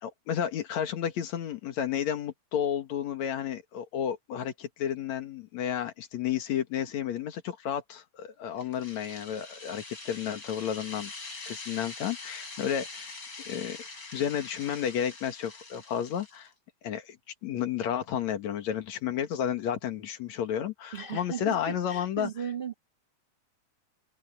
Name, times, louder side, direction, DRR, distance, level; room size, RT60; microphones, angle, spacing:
voice 1, 0.0-11.1 11.4-13.1 13.5-13.8 14.1-16.5 16.8-17.2 17.4-22.3, left 9 dB, 65° left, 2.7 m, -32 dB
sound 1, 8.6-16.5, left 3 dB, 35° left, 4.8 m, -44 dB
voice 2, 20.9-22.7, right 7 dB, 75° right, 0.5 m, -36 dB
open air
omnidirectional pair, 3.6 m